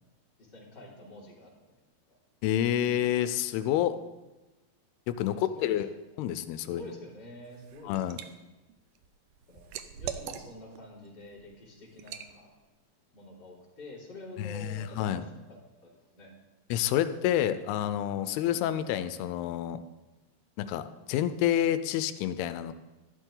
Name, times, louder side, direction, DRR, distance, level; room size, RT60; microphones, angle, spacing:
voice 1, 0.4-1.7 2.1-2.2 5.0-5.8 6.6-8.3 9.5-12.5 13.1-16.4, left 1 dB, 30° left, -5 dB, 3.2 m, -48 dB
voice 2, 2.4-4.0 5.1-5.9 6.2-6.8 7.8-8.2 14.4-15.2 16.7-19.8 20.6-22.7, left 11 dB, 85° left, 12 dB, 2.5 m, -28 dB
Liquid, 7.5-8.3 8.7-10.8 11.2-11.4 12.0-12.3, right 9 dB, 85° right, 1.8 m, -41 dB
13.0 x 12.0 x 3.8 m, 1.1 s
omnidirectional pair, 4.5 m